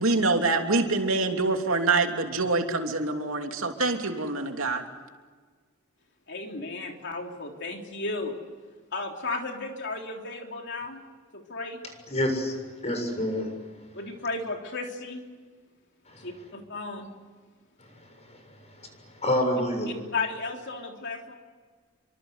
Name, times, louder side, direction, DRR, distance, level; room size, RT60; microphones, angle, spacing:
voice 1, 0.0-4.8, right 3 dB, 70° right, 3 dB, 3.1 m, -25 dB
voice 2, 6.3-8.3 8.9-11.0 11.3-11.8 13.9-15.2 16.2-17.1 19.9-21.3, left 3 dB, 55° left, 2 dB, 3.4 m, -34 dB
voice 3, 12.1-12.6 12.8-13.5 16.1-16.3 18.3-18.4 19.2-19.9, left 1 dB, 30° left, 5 dB, 7.1 m, -27 dB
29.5 x 25.0 x 8.1 m, 1.5 s
head